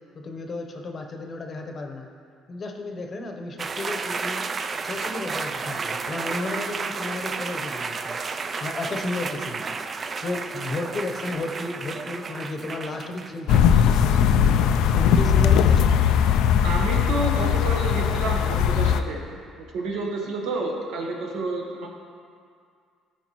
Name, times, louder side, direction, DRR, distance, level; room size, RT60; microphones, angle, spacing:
voice 1, 0.1-2.1 2.5-4.5 4.8-8.2 8.6-9.7 10.2-14.4 14.9-16.0, left 2 dB, 40° left, 4 dB, 0.8 m, -33 dB
sound 1, 3.6-13.8, right 4 dB, 35° right, 0.3 m, -32 dB
sound 2, 13.5-19.0, left 8 dB, 80° left, 0.3 m, -19 dB
voice 2, 16.6-19.2 19.6-21.9, right 3 dB, 80° right, 0 dB, 1.2 m, -29 dB
13.5 x 4.8 x 3.0 m, 2.2 s
cardioid pair, 100°, 0 cm